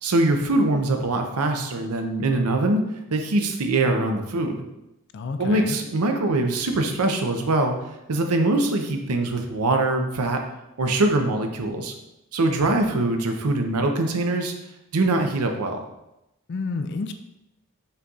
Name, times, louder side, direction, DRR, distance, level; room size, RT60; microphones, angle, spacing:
voice 1, 0.0-2.8 3.1-4.6 5.4-7.7 8.1-10.4 10.8-11.9 12.3-14.5 14.9-15.8, right 2 dB, 80° right, 4 dB, 0.6 m, -23 dB
voice 2, 5.1-5.8 16.5-17.1, left 4 dB, 50° left, 8 dB, 0.4 m, -29 dB
5.5 x 4.0 x 2.4 m, 0.91 s
head